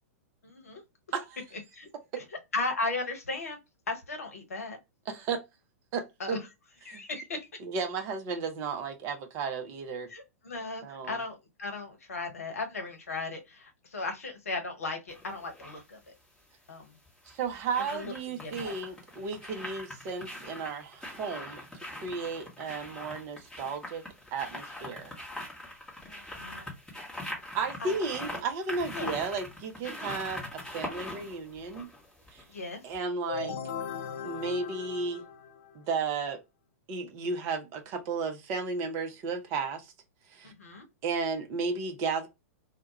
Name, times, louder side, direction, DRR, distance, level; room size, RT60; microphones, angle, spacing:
voice 1, 0.4-0.8 1.7-1.9 2.2-2.3 2.5-3.6 3.9-4.8 6.2-6.4 6.8-7.4 10.1-16.0 16.7-16.9 17.8-18.7 26.0-26.7 27.8-28.3 28.9-29.2 29.8-30.1 32.5-32.8 40.4-40.8, left 3 dB, 70° left, 0.8 m, -36 dB
voice 2, 5.1-5.4 5.9-6.4 6.9-7.0 7.6-10.1 10.8-11.2 17.3-21.6 22.0-24.0 24.3-25.1 27.5-31.9 32.3-32.4 32.8-33.6 34.2-35.2 35.7-36.4 36.9-39.9 40.3-40.5 41.0-42.3, right 4 dB, 30° right, 0.5 m, -34 dB
sound 1, 15.1-15.8 17.1-32.6 32.9-33.0, left 1 dB, 5° left, 0.9 m, -42 dB
sound 2, 33.3-36.0, left 6 dB, 50° left, 0.5 m, -38 dB
2.2 x 2.1 x 2.8 m
figure-of-eight pair, 105°, 8 cm